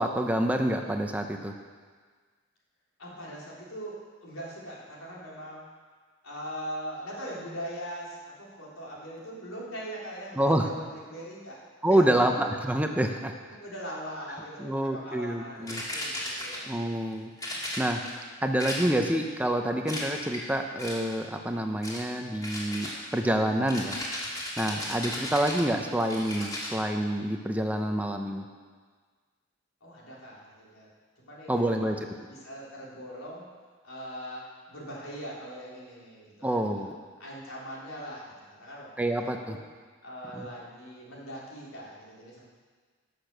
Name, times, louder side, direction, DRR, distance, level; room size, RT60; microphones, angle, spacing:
voice 1, 0.0-1.5 10.4-10.7 11.8-13.3 14.6-15.8 16.7-17.3 17.8-18.0 18.4-24.0 24.6-28.4 31.5-32.0 36.4-37.0 39.0-39.6 40.4-40.5, right 1 dB, 5° right, 4 dB, 0.7 m, -27 dB
voice 2, 3.0-5.7 6.2-11.6 11.9-12.2 13.5-16.7 17.1-17.3 24.6-24.9 29.8-30.9 31.2-32.0 32.3-33.5 33.8-36.9 37.2-38.2 38.5-39.6 40.0-42.4, equal, 85° left, -5 dB, 3.6 m, -41 dB
sound 1, 15.7-16.8 17.4-18.2 18.6-19.2 19.8-20.5 20.8-21.2 21.8-22.1 22.4-26.7, left 1 dB, 15° left, 2.7 m, -36 dB
18.0 x 6.8 x 6.7 m, 1.5 s
head